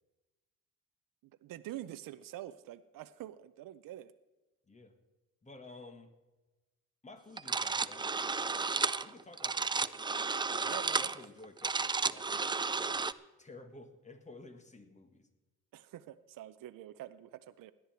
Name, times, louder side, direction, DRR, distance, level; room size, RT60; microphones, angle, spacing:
voice 1, 1.4-4.1 10.7-11.1 15.7-17.7, right 13 dB, 80° right, 12 dB, 0.6 m, -46 dB
voice 2, 5.4-6.1 7.0-10.0 10.5-13.1 13.4-15.3, left 2 dB, 20° left, 8 dB, 1.8 m, -53 dB
sound 1, 7.4-13.1, right 4 dB, 15° right, 0.4 m, -33 dB
17.5 x 11.0 x 4.5 m, 1.1 s
cardioid pair, 95°, 33 cm